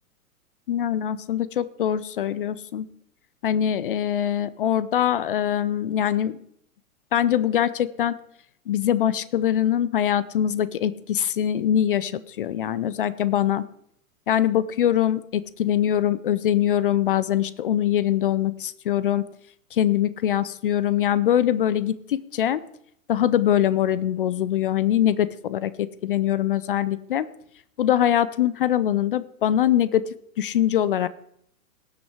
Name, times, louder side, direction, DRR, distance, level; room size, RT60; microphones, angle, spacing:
voice 1, 0.7-2.9 3.4-6.4 7.1-8.1 8.7-13.6 14.3-19.2 19.7-22.6 23.1-27.3 27.8-30.1 30.4-31.1, left 11 dB, 40° left, 18 dB, 0.5 m, -23 dB
18.5 x 6.4 x 4.9 m, 0.70 s
figure-of-eight pair, 110°, 44 cm